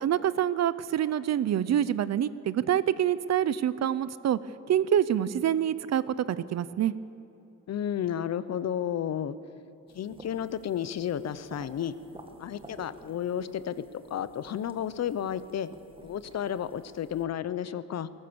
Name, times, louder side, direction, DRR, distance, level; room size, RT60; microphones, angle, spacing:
voice 1, 0.0-4.4 4.7-6.9, right 10 dB, 55° right, 16 dB, 0.7 m, -26 dB
voice 2, 7.7-9.4 9.9-11.9 12.4-13.8 14.1-15.7 16.0-18.1, left 9 dB, 50° left, 15 dB, 0.8 m, -32 dB
sound 1, 9.9-17.2, right 2 dB, 15° right, 1.7 m, -52 dB
20.5 x 18.5 x 7.0 m, 2.9 s
cardioid pair, 140°, 33 cm